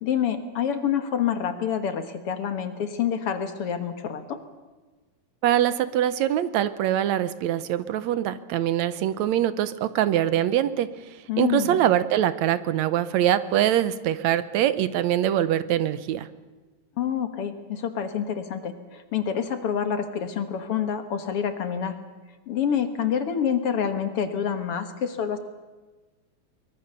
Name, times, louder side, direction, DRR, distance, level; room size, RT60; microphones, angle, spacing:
voice 1, 0.0-4.4 11.3-11.8 17.0-22.0 22.5-25.4, left 8 dB, 55° left, 9 dB, 2.1 m, -27 dB
voice 2, 5.4-16.3, right 11 dB, 75° right, 15 dB, 2.0 m, -23 dB
24.0 x 22.0 x 6.8 m, 1.3 s
omnidirectional pair, 3.3 m